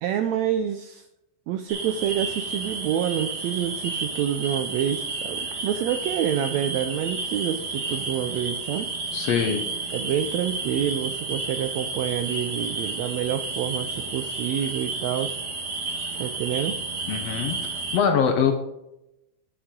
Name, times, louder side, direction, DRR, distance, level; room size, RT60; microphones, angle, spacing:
voice 1, 0.0-1.0 1.5-8.9 9.9-15.3 16.2-16.8, right 10 dB, 85° right, 9 dB, 1.6 m, -27 dB
sound 1, 1.7-18.0, right 3 dB, 40° right, 1.9 m, -31 dB
voice 2, 9.1-9.7 17.1-18.5, left 7 dB, 70° left, 5 dB, 1.7 m, -23 dB
10.0 x 7.0 x 3.7 m, 0.89 s
omnidirectional pair, 3.6 m